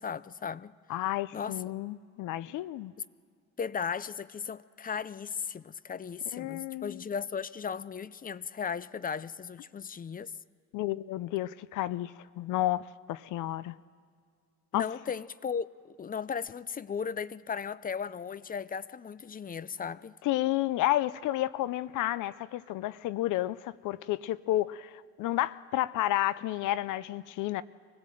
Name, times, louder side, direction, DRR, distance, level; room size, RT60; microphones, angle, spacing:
voice 1, 0.0-0.7 1.3-1.6 3.6-10.3 14.7-20.1, left 6 dB, 30° left, 0.5 m, -36 dB
voice 2, 0.9-2.9 6.3-7.0 10.7-13.8 14.7-14.8 20.2-27.6, left 15 dB, 85° left, 0.6 m, -31 dB
24.5 x 17.5 x 7.7 m
cardioid pair, 90°, 30 cm